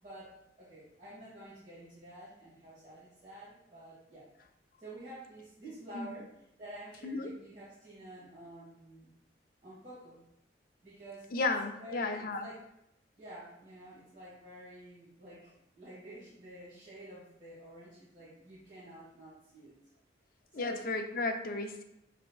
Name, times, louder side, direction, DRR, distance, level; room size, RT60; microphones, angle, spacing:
voice 1, 0.0-4.3 4.8-9.1 9.6-10.2 10.8-11.5 11.8-12.6 13.2-19.8 20.5-20.8, right 1 dB, 40° right, -11 dB, 1.4 m, -50 dB
voice 2, 7.0-7.4 11.3-12.5 20.5-21.8, left 3 dB, 50° left, 5 dB, 0.5 m, -34 dB
6.1 x 3.4 x 2.3 m, 0.81 s
head